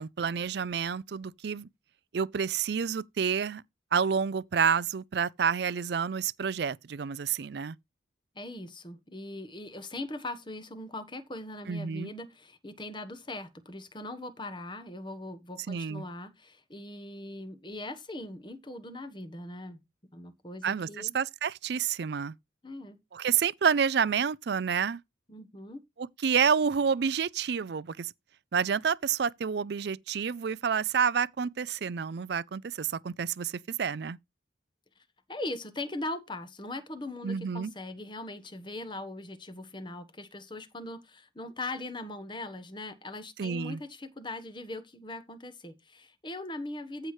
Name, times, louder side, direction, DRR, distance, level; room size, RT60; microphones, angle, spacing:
voice 1, 0.0-1.7 2.1-3.6 3.9-7.8 11.7-12.1 15.7-16.0 20.6-22.3 23.1-25.0 26.0-28.1 28.5-34.2 37.2-37.7 43.4-43.8, right 7 dB, 60° right, 0.4 m, -29 dB
voice 2, 8.3-19.8 20.1-21.1 22.6-23.0 25.3-25.8 35.3-47.1, left 2 dB, 25° left, 1.2 m, -40 dB
14.5 x 5.8 x 3.2 m
head